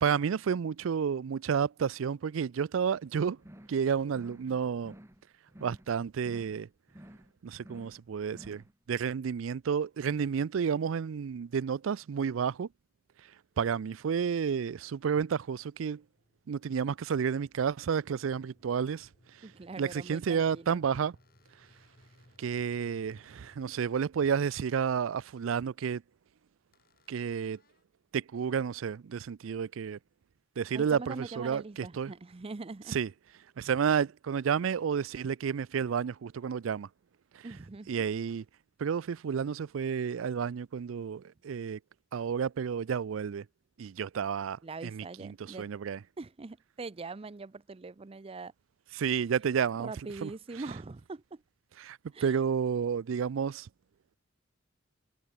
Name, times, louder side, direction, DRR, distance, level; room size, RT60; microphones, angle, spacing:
voice 1, 0.0-3.4 3.7-4.9 5.6-6.7 7.4-8.6 8.9-12.7 13.6-16.0 16.5-19.1 19.8-21.1 22.4-26.0 27.1-27.6 28.1-30.0 30.6-32.1 32.9-33.1 33.6-36.9 37.9-38.4 38.8-41.8 42.1-43.4 43.8-46.0 49.0-49.9 50.2-50.3 51.8-53.7, right 7 dB, 85° right, 0.4 m, -31 dB
sound 1, 3.4-3.8 4.1-4.5 4.8-5.2 5.5-5.9 6.2-6.6 6.9-7.3 7.6-8.0 8.3-8.7, equal, 15° right, 2.2 m, -52 dB
sound 2, 15.9-23.8, left 1 dB, 35° left, 1.9 m, -65 dB
voice 2, 19.4-20.8 30.7-33.0 37.4-38.0 44.6-45.7 46.2-48.5 49.0-49.2 49.8-51.4 52.1-52.4, right 3 dB, 30° right, 0.5 m, -42 dB
sound 3, 20.5-22.5 23.1-23.9 24.3-25.7 26.7-27.8, left 6 dB, 50° left, 7.8 m, -72 dB
head